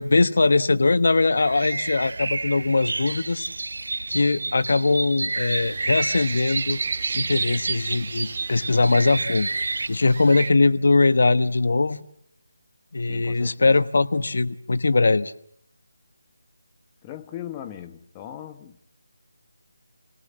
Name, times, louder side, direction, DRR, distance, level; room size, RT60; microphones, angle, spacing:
voice 1, 0.0-3.5 4.1-6.8 7.1-9.5 9.9-12.0 12.9-15.3, left 3 dB, 65° left, 1.1 m, -21 dB
sound 1, 1.4-9.9, right 3 dB, 75° right, 1.1 m, -31 dB
sound 2, 5.3-10.5, right 4 dB, 45° right, 1.6 m, -31 dB
voice 2, 13.1-13.7 17.0-18.9, left 11 dB, 15° left, 1.0 m, -39 dB
29.0 x 18.0 x 7.5 m
figure-of-eight pair, 170°, 0 cm